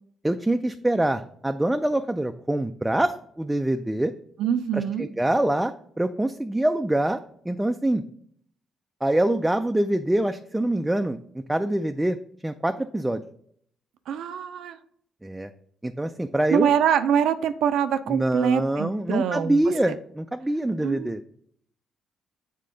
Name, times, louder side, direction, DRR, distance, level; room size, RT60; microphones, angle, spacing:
voice 1, 0.2-4.1 4.7-7.2 7.5-8.0 9.0-12.2 12.4-13.2 15.2-15.5 15.8-16.7 18.1-21.2, right 1 dB, 10° right, 7 dB, 0.3 m, -25 dB
voice 2, 4.4-5.1 14.1-14.8 16.5-19.6 20.8-21.1, right 8 dB, 80° right, 11 dB, 0.4 m, -24 dB
7.6 x 3.7 x 3.8 m, 0.64 s
cardioid pair, 90°, 0 cm